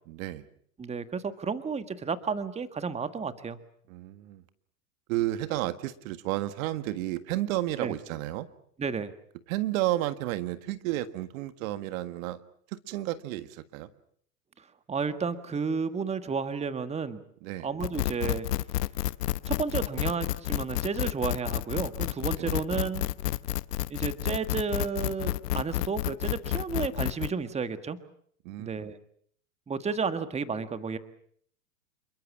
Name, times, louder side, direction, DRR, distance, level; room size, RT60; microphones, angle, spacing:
voice 1, 0.1-0.4 3.9-4.4 5.1-8.5 9.5-12.4 12.9-13.9 17.4-17.7 22.4-22.6 28.4-28.9, right 15 dB, 55° right, 13 dB, 1.7 m, -32 dB
voice 2, 0.8-3.6 7.8-7.9 8.8-9.1 14.6-17.2 17.6-18.5 19.4-23.1 23.9-28.0 28.6-29.0 29.7-31.0, right 5 dB, 15° right, 11 dB, 1.6 m, -32 dB
sound 1, 17.8-27.3, left 15 dB, 70° left, 1.1 m, -30 dB
28.5 x 22.0 x 7.3 m, 0.63 s
hypercardioid pair, 115°, 49 cm